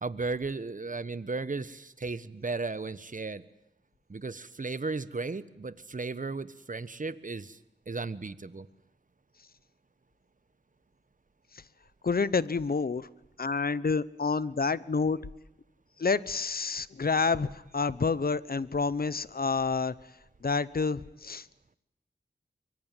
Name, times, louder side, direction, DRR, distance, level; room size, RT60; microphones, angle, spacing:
voice 1, 0.0-3.4 4.1-7.6 7.9-8.7, right 3 dB, 45° right, 15 dB, 1.3 m, -35 dB
voice 2, 12.0-13.1 13.4-15.2 16.0-19.9 20.4-21.5, left 4 dB, 55° left, 18 dB, 1.0 m, -28 dB
24.0 x 23.5 x 9.2 m, 0.83 s
cardioid pair, 55°, 19 cm